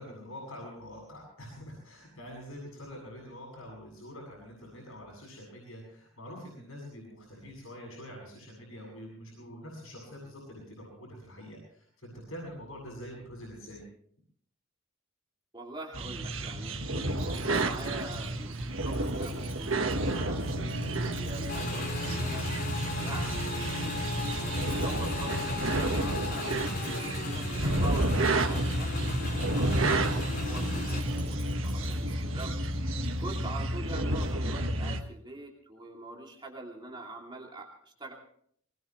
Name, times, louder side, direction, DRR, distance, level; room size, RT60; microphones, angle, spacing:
voice 1, 0.0-13.8, equal, 85° left, -2 dB, 7.7 m, -45 dB
voice 2, 15.5-22.5 23.0-32.5 33.2-38.1, right 2 dB, 25° right, -1 dB, 2.7 m, -44 dB
sound 1, 15.9-35.0, right 1 dB, 75° right, 1.4 m, -30 dB
Dog, 17.1-34.3, equal, 10° left, 7.5 m, -49 dB
Motorcycle / Engine, 21.5-31.0, left 3 dB, 50° left, 3.4 m, -38 dB
22.5 x 20.5 x 3.2 m, 0.64 s
head